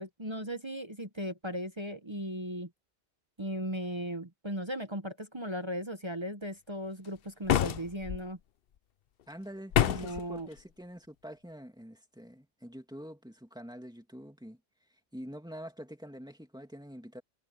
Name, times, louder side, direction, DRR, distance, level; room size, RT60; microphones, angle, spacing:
voice 1, 0.0-2.7 3.4-8.4 9.8-10.5, equal, 25° right, 1.3 m, -37 dB
sound 1, 7.5-8.2 9.7-10.2, left 10 dB, 60° left, 0.8 m, -27 dB
voice 2, 9.3-14.6 15.1-17.2, equal, 5° right, 2.5 m, -46 dB
omnidirectional pair, 1.1 m